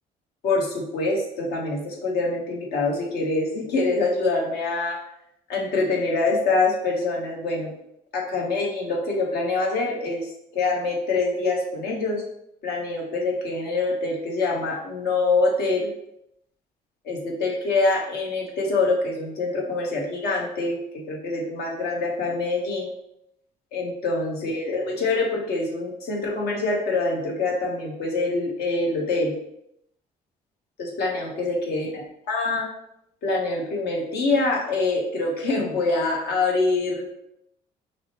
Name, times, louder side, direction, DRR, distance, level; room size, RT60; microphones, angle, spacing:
voice 1, 0.4-5.0 5.5-7.7 8.1-12.2 12.6-15.9 17.0-22.9 23.7-29.3 30.8-32.7 33.2-37.1, left 3 dB, 75° left, -1 dB, 1.2 m, -25 dB
5.9 x 2.1 x 3.0 m, 0.77 s
cardioid pair, 110°, 17 cm